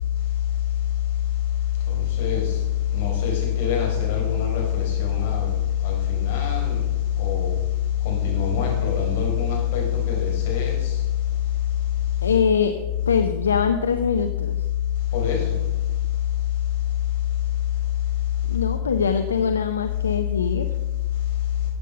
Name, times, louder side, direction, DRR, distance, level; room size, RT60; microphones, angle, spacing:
voice 1, 1.9-2.6 2.9-5.5 5.8-6.8 7.2-7.6 8.0-10.9 15.1-15.5, left 9 dB, 60° left, 4.2 m, -23 dB
voice 2, 12.2-14.6 18.5-20.7, left 6 dB, 85° left, 0.7 m, -23 dB
14.0 x 8.4 x 5.3 m
hypercardioid pair, 95°, 0 cm